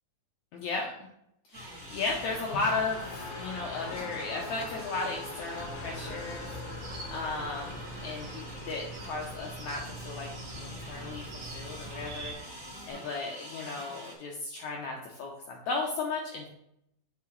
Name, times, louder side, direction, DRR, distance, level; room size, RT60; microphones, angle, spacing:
voice 1, 0.5-0.9 1.5-6.5 7.1-10.3 10.6-11.2 11.5-16.5, left 3 dB, 85° left, 0 dB, 1.6 m, -35 dB
Race car auto racing, 1.5-12.9, left 3 dB, 65° left, 2.4 m, -45 dB
sound 1, 1.5-14.1, right 1 dB, 20° right, 0.6 m, -46 dB
sound 2, 5.5-12.3, right 1 dB, 80° right, 1.0 m, -43 dB
8.3 x 5.4 x 3.1 m, 0.77 s
omnidirectional pair, 4.3 m